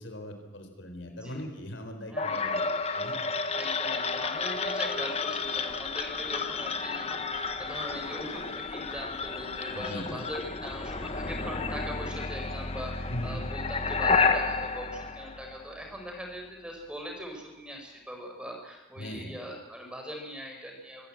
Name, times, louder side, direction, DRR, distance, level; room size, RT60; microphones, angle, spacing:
voice 1, 0.0-3.3 9.7-10.2 13.1-13.4 19.0-19.3, equal, 75° left, 6 dB, 4.0 m, -40 dB
voice 2, 1.1-1.4 2.1-2.6 3.5-21.1, equal, 5° right, 2 dB, 4.8 m, -41 dB
sound 1, 2.2-16.0, left 4 dB, 30° left, 1.3 m, -31 dB
25.5 x 16.0 x 8.7 m, 1.1 s
head